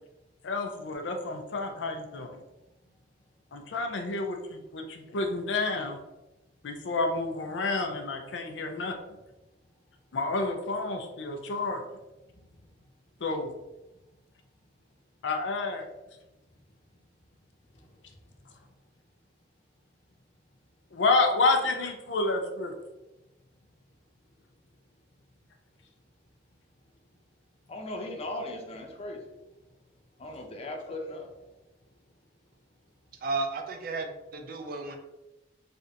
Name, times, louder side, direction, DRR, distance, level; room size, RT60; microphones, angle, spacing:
voice 1, 0.4-2.3 3.5-6.0 6.6-9.0 10.1-11.8 13.2-13.5 15.2-15.9 20.9-22.7, left 3 dB, 90° left, 5 dB, 0.5 m, -29 dB
voice 2, 12.3-12.7 17.7-18.5 27.7-29.3 30.2-31.3, left 1 dB, 35° left, 3 dB, 0.5 m, -39 dB
voice 3, 33.2-35.0, right 3 dB, 55° right, 5 dB, 0.4 m, -33 dB
3.3 x 2.5 x 2.7 m, 1.0 s
head